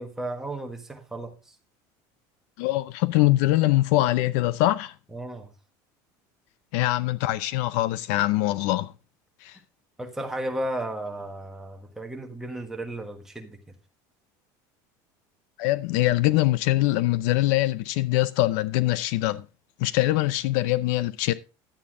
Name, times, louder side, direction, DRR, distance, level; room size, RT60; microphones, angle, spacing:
voice 1, 0.0-1.5 5.1-5.5 10.0-13.6, right 1 dB, 5° right, 1.4 m, -34 dB
voice 2, 2.6-4.9 6.7-8.9 9.4-9.6 15.6-19.4 19.8-21.3, left 17 dB, 65° left, 0.6 m, -23 dB
11.5 x 8.6 x 3.7 m
cardioid pair, 175°, 9 cm